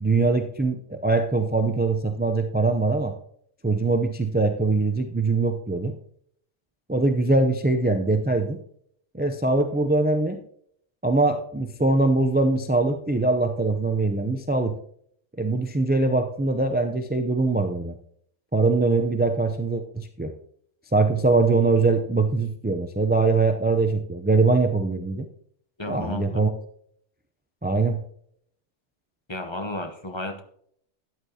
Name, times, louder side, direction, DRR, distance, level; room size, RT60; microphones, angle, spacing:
voice 1, 0.0-3.1 3.6-6.0 6.9-8.6 9.1-10.4 11.0-14.7 15.4-17.9 18.5-20.3 20.9-25.3 25.9-26.5 27.6-28.0, right 3 dB, 15° right, 5 dB, 0.3 m, -22 dB
voice 2, 25.8-26.4 29.3-30.4, left 1 dB, 25° left, 5 dB, 0.9 m, -32 dB
13.0 x 9.4 x 2.8 m, 0.66 s
omnidirectional pair, 1.2 m